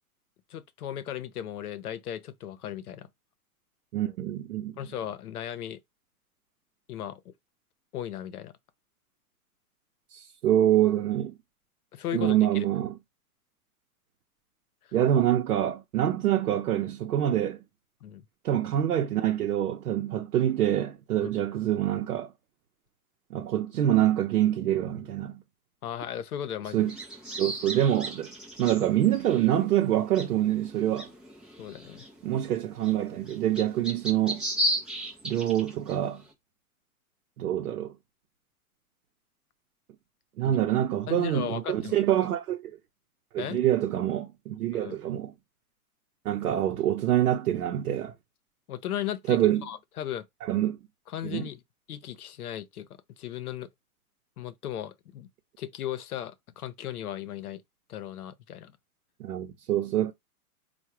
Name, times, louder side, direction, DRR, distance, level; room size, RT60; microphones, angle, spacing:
voice 1, 0.5-3.1 4.8-5.8 6.9-7.3 7.9-8.5 11.9-12.7 18.0-18.2 21.2-21.3 25.8-26.9 31.6-32.0 40.4-40.6 41.1-42.0 43.4-43.6 44.7-45.0 48.7-50.3 51.1-51.6 51.9-53.7 54.4-55.3 55.6-57.6 57.9-58.7, left 10 dB, 75° left, 0.8 m, -36 dB
voice 2, 3.9-4.8 10.1-11.3 12.1-13.0 14.9-17.6 18.4-22.3 23.3-25.4 26.7-27.0 27.4-28.3 28.6-31.1 32.2-34.4 35.2-36.2 37.4-37.9 40.4-42.7 43.3-45.3 46.2-48.1 49.3-49.6 50.5-50.8 51.2-51.5 59.2-60.1, right 12 dB, 75° right, 0.8 m, -26 dB
sound 1, 26.8-36.2, equal, ahead, 0.3 m, -36 dB
4.5 x 2.3 x 4.5 m
hypercardioid pair, 105°, 44 cm